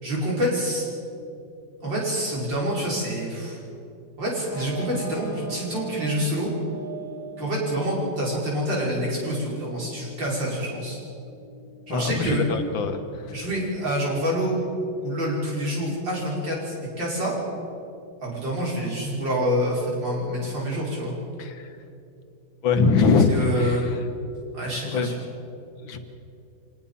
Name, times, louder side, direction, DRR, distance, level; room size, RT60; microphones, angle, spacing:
voice 1, 0.0-0.8 1.8-3.6 4.2-6.5 7.4-11.0 11.9-12.4 13.3-14.6 15.0-17.3 18.2-21.2 23.3-23.8 24.5-25.1, equal, 70° right, -5 dB, 6.3 m, -27 dB
sound 1, 4.5-19.9, right 3 dB, 5° right, 3.0 m, -43 dB
voice 2, 11.9-13.3 21.4-21.7 22.6-24.0 24.9-25.1 25.8-26.0, left 4 dB, 80° left, 7 dB, 2.1 m, -22 dB
25.5 x 19.0 x 5.7 m, 2.7 s
omnidirectional pair, 2.1 m